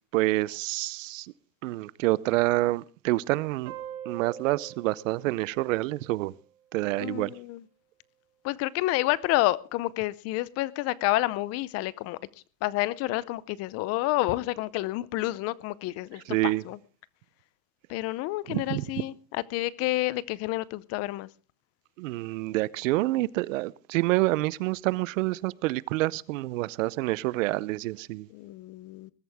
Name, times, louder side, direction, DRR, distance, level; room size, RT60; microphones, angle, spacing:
voice 1, 0.1-1.3 1.6-3.7 4.1-6.3 6.7-7.4 16.3-16.6 18.5-18.9 22.0-28.3, right 19 dB, 65° right, 0.7 m, -27 dB
sound 1, 3.7-6.8, right 10 dB, 90° right, 2.2 m, -44 dB
voice 2, 7.0-7.6 8.4-12.2 12.6-16.2 16.6-16.8 17.9-21.3 28.3-29.1, left 18 dB, 35° left, 0.7 m, -29 dB
20.5 x 13.5 x 3.5 m
supercardioid pair, 140°, 41 cm